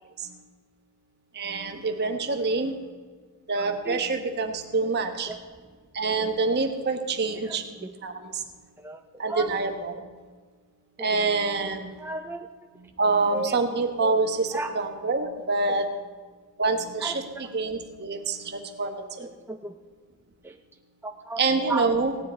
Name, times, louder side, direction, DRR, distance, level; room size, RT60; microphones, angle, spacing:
voice 1, 1.3-2.8 3.5-5.3 5.9-7.7 8.0-8.4 9.2-10.2 11.0-12.0 12.8-16.0 16.6-19.3 21.4-22.2, right 3 dB, 50° right, 5 dB, 1.2 m, -26 dB
voice 2, 3.6-4.0 5.3-5.4 7.5-7.9 8.8-9.5 11.0-11.3 12.0-12.5 13.3-13.6 14.5-14.7 17.0-17.1 19.5-19.7 20.4-20.5 21.0-21.4 21.7-21.9, right 3 dB, 10° right, 4 dB, 0.5 m, -34 dB
16.5 x 10.0 x 4.3 m, 1.5 s
head